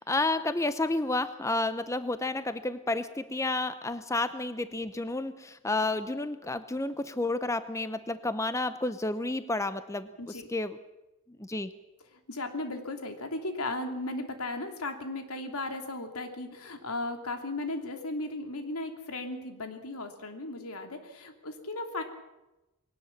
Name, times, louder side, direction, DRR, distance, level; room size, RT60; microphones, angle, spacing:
voice 1, 0.0-10.8 11.3-11.7, left 2 dB, 15° left, 12 dB, 0.7 m, -31 dB
voice 2, 10.2-10.5 12.3-22.0, left 2 dB, 85° left, 5 dB, 2.9 m, -36 dB
21.5 x 18.5 x 7.3 m, 1.0 s
head